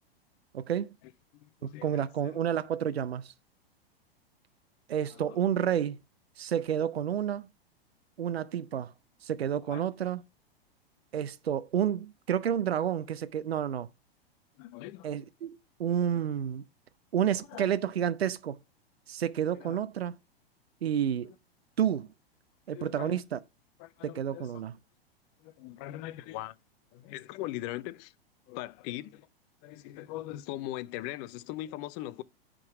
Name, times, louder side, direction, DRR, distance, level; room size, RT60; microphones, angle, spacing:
voice 1, 0.5-0.9 1.6-3.3 4.9-6.0 6.4-7.5 8.2-8.9 9.2-10.2 11.1-13.9 15.0-15.5 15.8-16.6 17.1-18.6 19.1-20.1 20.8-21.3 21.8-22.1 22.7-23.4 24.0-24.7, right 9 dB, 80° right, 0.6 m, -30 dB
voice 2, 1.3-2.4 5.1-5.4 9.7-9.8 14.6-15.1 16.1-16.2 17.3-17.7 19.5-19.8 21.2-21.3 22.7-23.2 23.8-24.5 25.4-26.6 26.9-28.1 28.5-29.3 29.6-32.2, left 15 dB, 35° left, 0.6 m, -41 dB
10.5 x 3.8 x 5.9 m
figure-of-eight pair, 100°, 31 cm